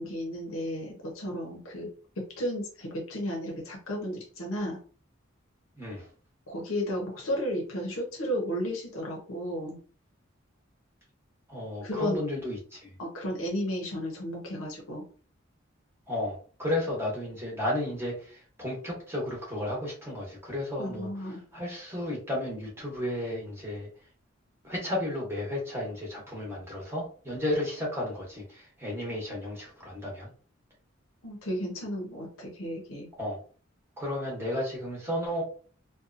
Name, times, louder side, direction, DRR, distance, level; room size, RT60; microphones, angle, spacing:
voice 1, 0.0-1.9 2.2-4.8 6.5-9.8 11.8-12.2 13.0-15.0 20.8-21.4 31.2-33.1, equal, 90° left, -1 dB, 0.8 m, -33 dB
voice 2, 5.8-6.1 11.5-12.9 16.1-23.9 24.6-30.3 33.2-33.4 34.0-35.4, left 1 dB, 10° right, -3 dB, 0.9 m, -33 dB
2.7 x 2.2 x 2.5 m, 0.40 s
head